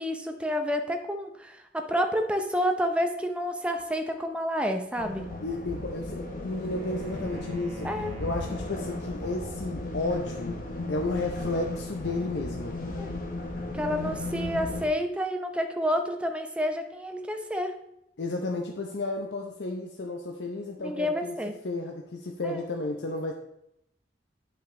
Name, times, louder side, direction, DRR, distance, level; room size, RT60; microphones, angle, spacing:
voice 1, 0.0-5.3 7.8-8.1 13.0-13.1 13.7-17.7 20.8-21.5 22.4-22.6, equal, 5° right, 4 dB, 0.6 m, -29 dB
sound 1, 5.0-14.9, left 2 dB, 50° left, 1.1 m, -35 dB
voice 2, 5.4-7.9 8.2-10.6 10.9-12.8 18.2-21.4 21.6-23.3, left 2 dB, 70° left, 2 dB, 0.7 m, -32 dB
Wind instrument woodwind instrument, 5.5-9.3, equal, 35° right, 0.8 m, -48 dB
8.7 x 5.8 x 3.7 m, 0.80 s
head